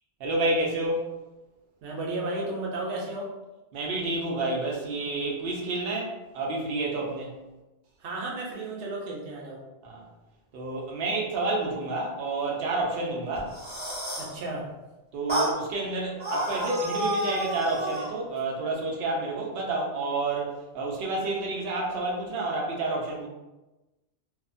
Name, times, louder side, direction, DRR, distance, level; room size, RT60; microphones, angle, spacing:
voice 1, 0.2-1.1 3.7-7.3 9.8-10.0 10.5-13.5 15.1-23.3, right 2 dB, 65° right, -2 dB, 0.8 m, -29 dB
voice 2, 1.8-3.3 8.0-9.6 14.2-14.6, right 2 dB, 90° right, -2 dB, 0.9 m, -33 dB
sound 1, 13.4-14.4 15.3-15.6 16.2-18.1, right 1 dB, 10° right, 0.8 m, -30 dB
2.7 x 2.1 x 2.5 m, 1.1 s
omnidirectional pair, 1.2 m